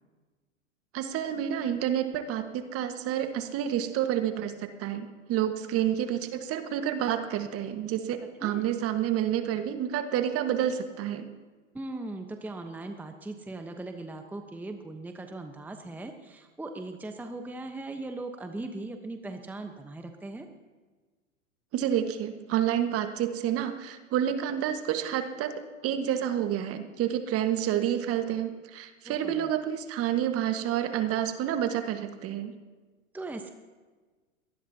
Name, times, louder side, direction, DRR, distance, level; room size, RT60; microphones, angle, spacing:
voice 1, 0.9-11.3 21.7-32.5, right 10 dB, 35° right, 8 dB, 1.6 m, -29 dB
voice 2, 11.7-20.5 29.0-29.5 33.1-33.5, right 2 dB, 5° right, 6 dB, 1.0 m, -39 dB
23.5 x 18.5 x 2.8 m, 1.3 s
hypercardioid pair, 100°, 40 cm